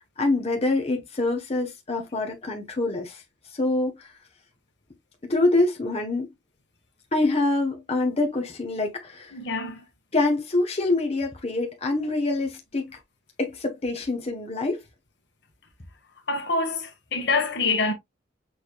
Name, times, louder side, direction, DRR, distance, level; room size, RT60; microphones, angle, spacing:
voice 1, 0.2-3.2 3.5-4.1 5.3-6.3 7.1-9.4 10.1-13.0 13.4-14.8, left 2 dB, 35° left, 1.0 m, -25 dB
voice 2, 9.3-9.8 16.3-17.9, left 3 dB, 65° left, 1.4 m, -26 dB
6.3 x 3.4 x 2.3 m
head